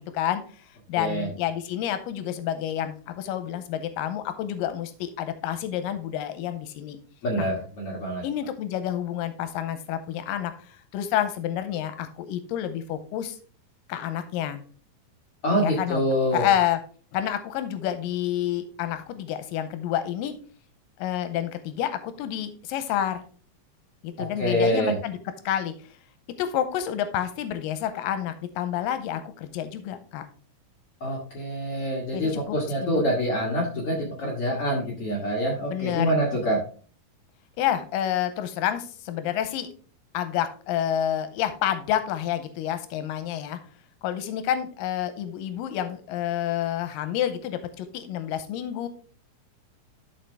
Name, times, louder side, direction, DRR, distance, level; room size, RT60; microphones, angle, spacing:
voice 1, 0.0-7.0 7.4-7.5 8.2-13.4 13.9-14.6 15.6-16.0 16.3-16.8 17.1-20.3 21.0-23.2 24.0-25.2 25.5-25.7 26.4-30.3 32.1-32.6 32.8-33.0 35.7-36.1 37.6-39.7 40.1-43.6 44.0-48.9, left 10 dB, 90° left, 10 dB, 2.3 m, -29 dB
voice 2, 1.0-1.3 7.2-8.2 15.4-16.5 24.4-25.0 31.0-36.6, equal, 50° left, -3 dB, 2.2 m, -26 dB
13.0 x 4.4 x 3.4 m, 0.41 s
omnidirectional pair, 3.9 m